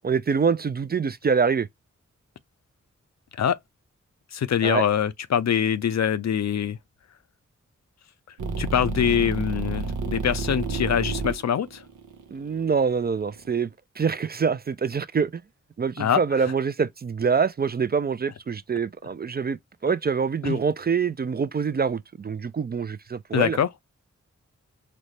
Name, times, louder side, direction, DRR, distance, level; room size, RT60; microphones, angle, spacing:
voice 1, 0.0-1.7 4.6-4.9 12.3-13.7 14.0-15.4 15.8-23.6, right 6 dB, 35° right, 0.4 m, -25 dB
voice 2, 4.3-6.8 8.6-11.8 16.0-16.2 20.4-20.6 23.3-23.7, left 8 dB, 65° left, 0.5 m, -24 dB
sound 1, 8.4-13.5, right 4 dB, 90° right, 0.8 m, -31 dB
4.1 x 2.1 x 3.1 m
cardioid pair, 45°, 30 cm